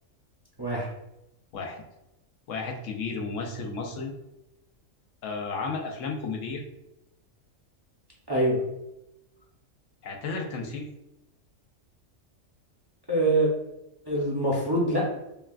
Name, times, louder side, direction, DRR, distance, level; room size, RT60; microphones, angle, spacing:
voice 1, 2.5-4.1 5.2-6.6 10.0-10.9, left 4 dB, 75° left, 2 dB, 1.0 m, -33 dB
voice 2, 8.3-8.6 13.1-13.5 14.1-15.1, right 1 dB, 25° right, -3 dB, 0.7 m, -24 dB
5.4 x 2.3 x 2.4 m, 0.89 s
omnidirectional pair, 1.4 m